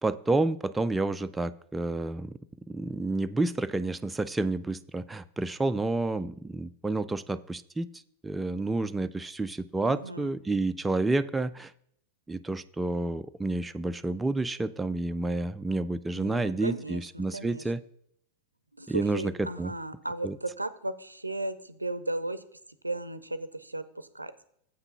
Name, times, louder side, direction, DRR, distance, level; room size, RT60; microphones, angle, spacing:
voice 1, 0.0-2.3 2.7-7.9 8.2-11.7 12.3-17.8 18.9-19.7 20.2-20.4, right 2 dB, 10° right, 10 dB, 0.3 m, -29 dB
voice 2, 9.8-10.3 16.1-17.7 18.8-22.4 22.8-24.3, right 2 dB, 85° right, 14 dB, 0.5 m, -35 dB
7.9 x 5.8 x 5.6 m, 0.70 s
figure-of-eight pair, 90°, 0 cm